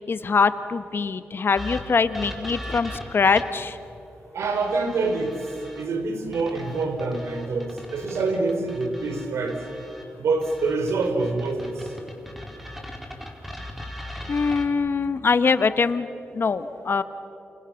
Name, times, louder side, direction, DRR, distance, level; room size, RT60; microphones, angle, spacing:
voice 1, 0.1-3.8 14.3-16.1 16.3-17.0, left 5 dB, 55° left, 11 dB, 1.3 m, -23 dB
sound 1, 1.6-3.7 4.4-5.8 6.3-10.0 10.4-14.7, equal, ahead, 4.4 m, -39 dB
voice 2, 4.3-5.4 5.8-9.6 10.2-11.7, right 3 dB, 80° right, 6 dB, 3.7 m, -26 dB
28.5 x 28.0 x 7.2 m, 2.9 s
cardioid pair, 65°, 5 cm